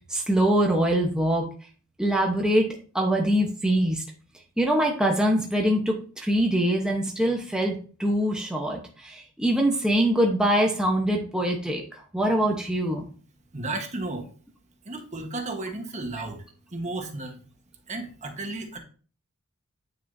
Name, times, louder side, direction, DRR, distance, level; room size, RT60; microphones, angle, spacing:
voice 1, 0.1-1.5 2.0-2.7 2.9-4.0 4.6-13.1, right 1 dB, 5° right, -1 dB, 1.0 m, -23 dB
voice 2, 13.5-14.3 14.8-16.5 16.7-17.4 17.9-18.8, right 2 dB, 30° right, 4 dB, 1.3 m, -33 dB
9.4 x 6.3 x 2.7 m, 0.39 s
head